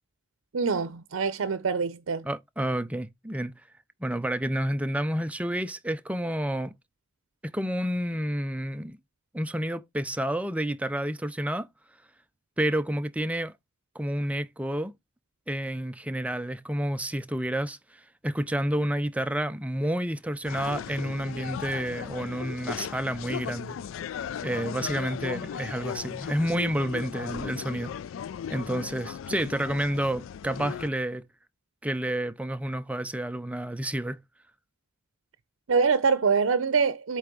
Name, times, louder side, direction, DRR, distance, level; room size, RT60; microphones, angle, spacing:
voice 1, 0.5-2.3 35.7-37.2, right 5 dB, 90° right, 0.6 m, -24 dB
voice 2, 2.2-3.5 4.0-6.7 7.5-9.0 9.3-11.7 12.6-13.5 13.9-14.9 15.5-23.8 24.4-28.0 28.5-31.2 31.8-34.2, right 1 dB, 5° right, 0.6 m, -30 dB
sound 1, 20.4-30.9, left 8 dB, 75° left, 0.3 m, -37 dB
8.2 x 3.4 x 5.2 m
head